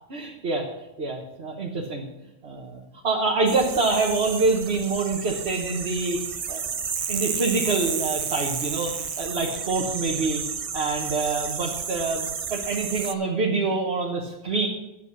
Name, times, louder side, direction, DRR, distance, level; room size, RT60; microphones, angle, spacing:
voice 1, 0.1-0.7 1.0-2.1 2.4-6.2 6.5-6.6 7.1-10.4 10.7-14.7, right 3 dB, 85° right, -1 dB, 1.6 m, -26 dB
sound 1, 3.5-13.1, right 6 dB, 40° right, 0.5 m, -31 dB
11.0 x 8.1 x 6.1 m, 0.95 s
omnidirectional pair, 1.0 m